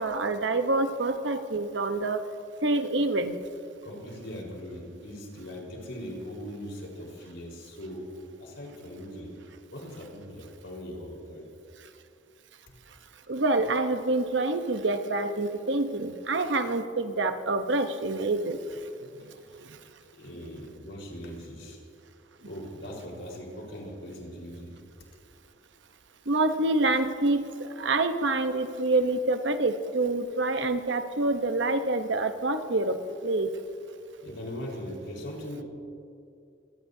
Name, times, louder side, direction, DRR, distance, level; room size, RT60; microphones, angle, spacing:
voice 1, 0.0-2.2 2.6-3.4 13.3-18.8 19.6-19.8 26.3-33.0 33.2-33.5, right 2 dB, 65° right, 8 dB, 1.0 m, -27 dB
voice 2, 3.8-8.1 8.4-9.3 9.7-11.5 20.1-21.8 22.4-24.8 34.2-35.6, equal, 70° left, -2 dB, 4.5 m, -40 dB
25.0 x 19.0 x 2.8 m, 2.6 s
head